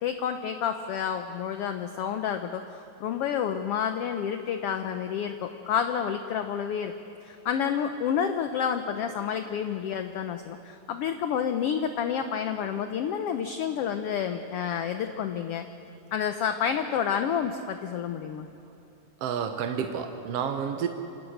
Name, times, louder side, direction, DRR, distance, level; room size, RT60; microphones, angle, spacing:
voice 1, 0.0-6.9 7.2-15.7 16.1-18.5, left 8 dB, 75° left, 7 dB, 1.4 m, -29 dB
voice 2, 19.2-20.9, right 7 dB, 65° right, 5 dB, 1.8 m, -30 dB
27.0 x 18.5 x 6.6 m, 2.7 s
omnidirectional pair, 3.4 m